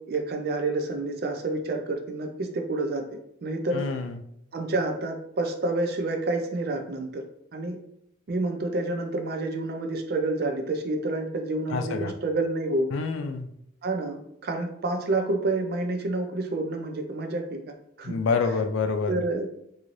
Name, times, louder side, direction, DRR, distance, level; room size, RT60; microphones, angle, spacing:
voice 1, 0.1-3.0 3.4-3.8 4.5-7.2 7.5-7.8 8.3-12.9 13.8-17.6 18.0-18.2 19.1-19.5, right 2 dB, 50° right, 5 dB, 0.4 m, -28 dB
voice 2, 3.7-4.2 11.7-12.1 12.9-13.5 18.0-19.2, left 4 dB, 65° left, 8 dB, 0.3 m, -27 dB
3.1 x 2.7 x 2.5 m, 0.74 s
head